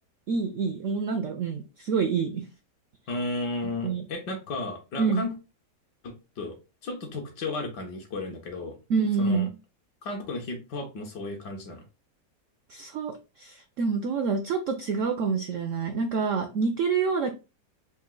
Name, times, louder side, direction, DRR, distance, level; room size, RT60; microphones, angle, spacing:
voice 1, 0.3-2.5 3.8-4.0 5.0-5.2 8.9-9.5 12.7-17.3, right 5 dB, 75° right, 6 dB, 0.7 m, -27 dB
voice 2, 3.1-5.3 6.0-6.6 6.8-8.8 9.2-9.5 10.0-11.8, left 2 dB, 70° left, 3 dB, 1.7 m, -34 dB
4.5 x 2.6 x 3.7 m, 0.29 s
omnidirectional pair, 1.9 m